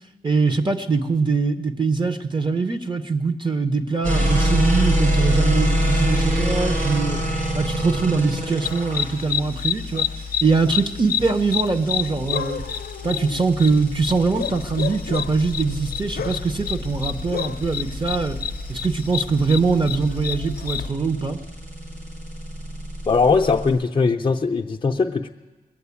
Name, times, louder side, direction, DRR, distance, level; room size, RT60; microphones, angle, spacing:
voice 1, 0.2-7.2 7.5-12.6 13.0-18.4 18.7-21.4, right 4 dB, 30° right, 8 dB, 0.8 m, -22 dB
sound 1, 4.0-23.7, equal, 55° right, 5.3 m, -26 dB
sound 2, 8.6-20.9, left 8 dB, 85° left, 0.5 m, -29 dB
voice 2, 23.1-25.3, left 4 dB, 35° left, 2 dB, 0.5 m, -20 dB
20.5 x 7.7 x 8.3 m, 1.3 s
wide cardioid pair, 110°, 15 cm